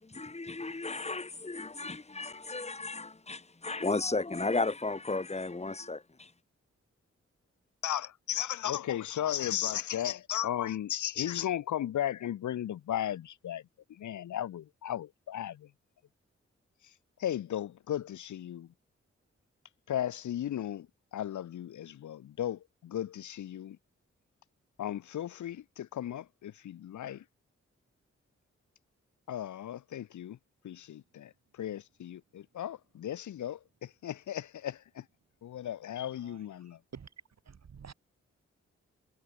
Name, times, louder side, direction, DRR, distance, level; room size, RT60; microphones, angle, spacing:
voice 1, 0.0-6.3, left 3 dB, 20° left, 1.6 m, -34 dB
voice 2, 7.8-13.6 13.9-15.7 17.2-18.7 19.9-23.8 24.8-27.2 29.3-30.4 30.6-35.1 35.4-36.8, left 11 dB, 80° left, 0.8 m, -35 dB
voice 3, 36.1-36.4 36.9-37.1 37.5-37.9, right 6 dB, 65° right, 2.2 m, -49 dB
cardioid pair, 45°, 29 cm